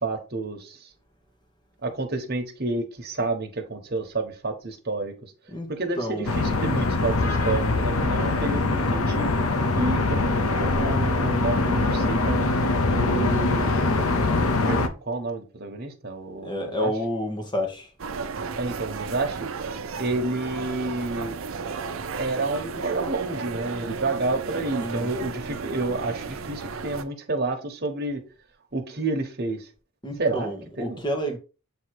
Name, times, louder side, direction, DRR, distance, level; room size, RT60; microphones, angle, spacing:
voice 1, 0.0-0.9 1.8-5.3 5.7-9.4 9.7-12.5 12.9-14.4 14.7-16.9 18.5-19.5 20.0-21.4 22.1-28.2 28.7-29.7 30.2-31.0, right 2 dB, 45° right, 1.3 m, -30 dB
voice 2, 6.0-6.3 16.4-17.9 24.8-25.1 30.0-31.4, equal, 20° left, 1.2 m, -29 dB
sound 1, 6.3-14.9, left 3 dB, 75° left, 0.8 m, -23 dB
sound 2, 18.0-27.0, right 5 dB, 65° right, 0.6 m, -34 dB
7.7 x 3.0 x 4.7 m
head